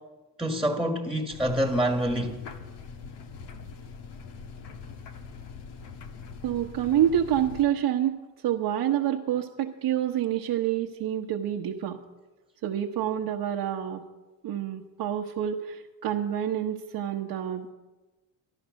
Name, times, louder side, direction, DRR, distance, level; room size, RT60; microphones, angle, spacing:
voice 1, 0.4-2.4, right 1 dB, ahead, 1.7 m, -26 dB
sound 1, 1.3-7.6, left 5 dB, 65° left, 1.5 m, -43 dB
voice 2, 6.4-8.2 8.4-12.0 12.6-14.0 14.4-17.7, right 10 dB, 60° right, 1.2 m, -27 dB
13.0 x 12.5 x 6.4 m
supercardioid pair, 80°, 45 cm